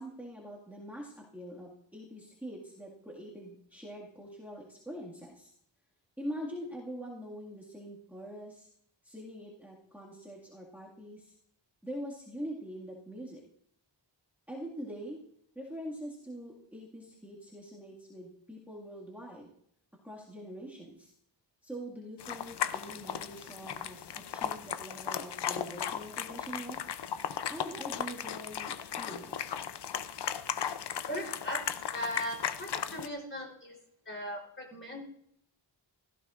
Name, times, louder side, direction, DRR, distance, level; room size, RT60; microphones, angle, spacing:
voice 1, 0.0-5.5 6.2-8.7 9.0-11.3 11.8-13.4 14.5-15.2 15.6-19.5 20.0-21.1 21.6-26.8 27.5-29.5, equal, 5° right, -6 dB, 2.0 m, -44 dB
sound 1, 22.2-33.1, left 8 dB, 65° left, 0.6 m, -36 dB
voice 2, 31.1-31.6 31.9-33.8 34.1-35.0, equal, 25° left, -1 dB, 3.7 m, -38 dB
16.0 x 14.5 x 2.5 m, 0.69 s
wide cardioid pair, 145°, 45 cm